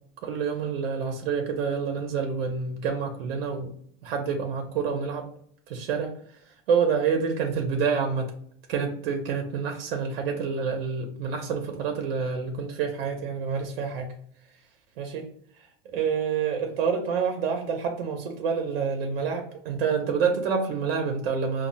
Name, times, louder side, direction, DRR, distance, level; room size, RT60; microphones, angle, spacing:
voice 1, 0.2-3.7 4.0-5.3 5.7-6.1 6.7-8.3 8.7-14.1 15.0-15.3 15.8-21.7, right 6 dB, 85° right, 4 dB, 0.7 m, -27 dB
4.3 x 2.3 x 2.5 m, 0.65 s
supercardioid pair, 125°, 29 cm